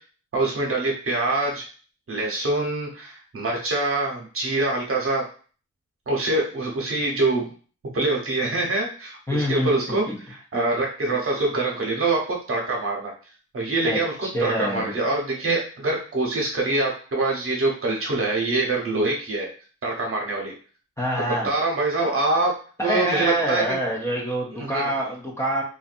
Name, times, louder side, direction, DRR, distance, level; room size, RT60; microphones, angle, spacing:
voice 1, 0.3-1.6 2.1-5.2 6.1-7.5 7.9-13.1 13.5-14.1 14.4-19.5 19.8-20.5 21.2-22.5 22.8-23.8 24.5-24.9, right 2 dB, 45° right, -1 dB, 0.9 m, -25 dB
voice 2, 9.3-9.7 10.1-10.2 13.8-14.9 21.0-21.5 22.8-25.6, equal, 10° left, -4 dB, 0.5 m, -26 dB
2.5 x 2.3 x 2.5 m, 0.39 s
wide cardioid pair, 100°, 30 cm